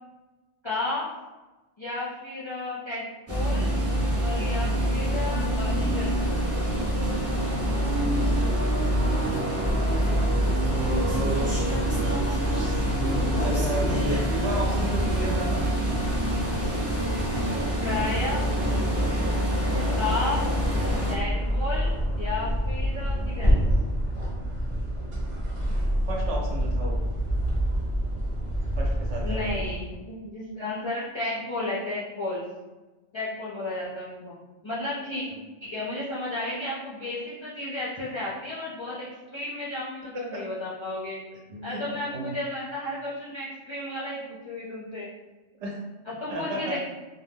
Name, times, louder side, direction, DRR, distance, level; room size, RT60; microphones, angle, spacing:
voice 1, 0.6-1.1 1.8-3.7 4.2-6.1 17.8-18.5 20.0-20.4 21.1-23.6 29.2-32.4 33.1-34.4 34.6-35.2 35.6-41.2 41.6-45.1 46.1-46.8, left 2 dB, 45° left, -9 dB, 0.4 m, -33 dB
sound 1, 3.3-21.1, equal, 20° right, 0.4 m, -25 dB
voice 2, 8.9-9.4 10.7-11.5 11.9-15.6 19.7-20.0 26.1-26.9 28.7-29.6 40.1-40.4 41.5-41.8 42.1-42.3 45.6-45.7 46.3-46.8, right 1 dB, 80° right, -2 dB, 1.1 m, -33 dB
sound 2, 20.4-29.9, equal, 45° right, 0.9 m, -27 dB
2.4 x 2.2 x 3.4 m, 1.2 s
omnidirectional pair, 1.2 m